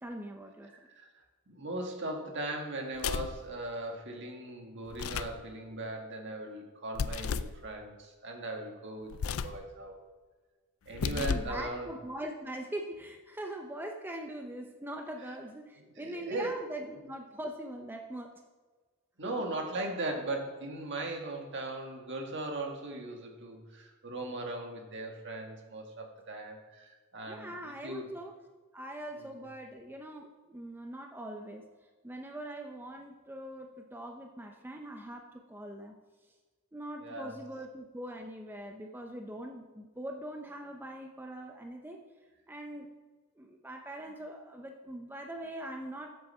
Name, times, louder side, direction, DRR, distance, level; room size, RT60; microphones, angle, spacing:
voice 1, 0.0-0.7 11.1-18.3 19.2-19.3 27.3-28.3 28.7-31.6 32.0-36.0 36.7-42.1 42.5-42.9 43.4-46.2, right 1 dB, 10° right, 3 dB, 0.6 m, -42 dB
voice 2, 0.8-1.2 1.5-10.0 10.9-11.9 16.0-16.6 19.2-28.1 29.2-29.5 37.0-37.4, right 2 dB, 55° right, 3 dB, 1.7 m, -39 dB
sound 1, 2.9-3.4 4.9-5.4 6.9-7.6 9.1-9.6 10.9-11.6, left 6 dB, 70° left, 0.4 m, -33 dB
13.5 x 7.8 x 4.3 m, 1.4 s
head